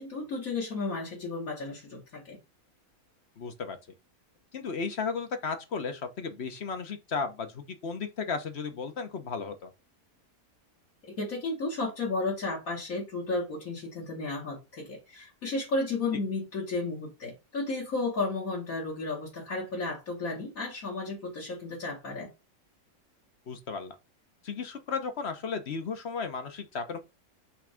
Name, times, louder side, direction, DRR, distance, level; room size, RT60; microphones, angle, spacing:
voice 1, 0.0-2.4 11.2-22.3, left 3 dB, 65° left, 2.1 m, -33 dB
voice 2, 3.4-3.8 4.5-9.7 23.5-24.0 24.4-27.0, left 5 dB, 50° left, 1.1 m, -34 dB
5.9 x 3.3 x 5.0 m
omnidirectional pair, 1.5 m